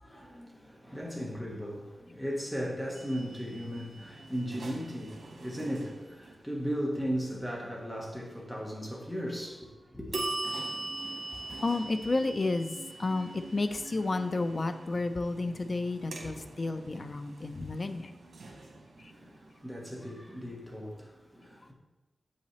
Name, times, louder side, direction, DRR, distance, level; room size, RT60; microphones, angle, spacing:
voice 1, 0.0-10.2 19.0-21.7, equal, 5° left, 1.2 m, -37 dB
sound 1, 2.9-6.7 10.1-20.8, right 2 dB, 90° right, 1.1 m, -42 dB
voice 2, 11.6-18.1 19.0-19.1, left 3 dB, 40° left, 0.5 m, -31 dB
7.7 x 5.6 x 3.2 m
wide cardioid pair, 120°, 0 cm